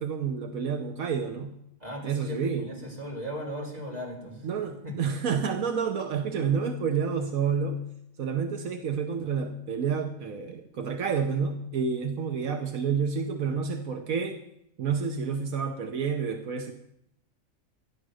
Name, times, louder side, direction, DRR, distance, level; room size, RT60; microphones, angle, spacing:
voice 1, 0.0-1.5 2.0-2.7 4.4-7.9 8.2-14.4 14.8-16.7, right 6 dB, 80° right, 5 dB, 1.4 m, -29 dB
voice 2, 1.8-5.0, equal, 30° right, -4 dB, 4.1 m, -38 dB
12.0 x 10.5 x 6.3 m, 0.76 s
omnidirectional pair, 1.4 m